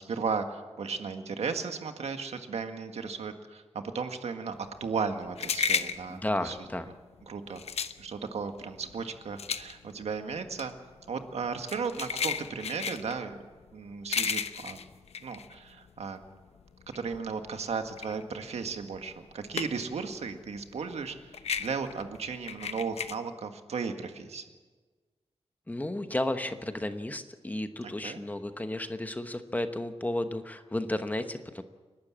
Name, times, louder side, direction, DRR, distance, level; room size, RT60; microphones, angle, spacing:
voice 1, 0.0-6.7 7.3-7.6 8.0-10.7 11.1-13.4 13.7-14.8 15.2-16.2 16.9-24.5 27.8-28.2, right 5 dB, 75° right, 7 dB, 1.7 m, -35 dB
sound 1, 4.6-16.2 16.6-20.0 20.3-23.1, left 6 dB, 75° left, 0.9 m, -34 dB
voice 2, 6.1-6.9 25.7-31.6, left 1 dB, 15° left, 8 dB, 1.0 m, -33 dB
29.5 x 12.0 x 7.5 m, 1.4 s
wide cardioid pair, 145°, 11 cm